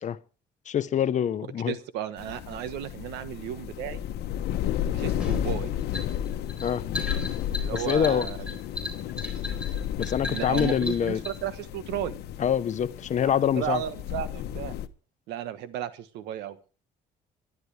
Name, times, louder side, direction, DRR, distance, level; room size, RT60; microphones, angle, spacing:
voice 1, 0.7-1.7 6.6-6.8 7.7-8.3 10.0-11.2 12.4-13.8, left 9 dB, 45° left, 1.0 m, -25 dB
voice 2, 1.7-4.0 4.9-5.7 7.6-8.5 10.2-12.1 13.5-14.7 15.3-16.6, right 11 dB, 90° right, 1.4 m, -34 dB
sound 1, 2.2-14.9, left 10 dB, 75° left, 1.0 m, -33 dB
sound 2, 5.2-11.4, left 2 dB, 5° right, 3.9 m, -36 dB
24.0 x 11.0 x 3.4 m
cardioid pair, 110°, 17 cm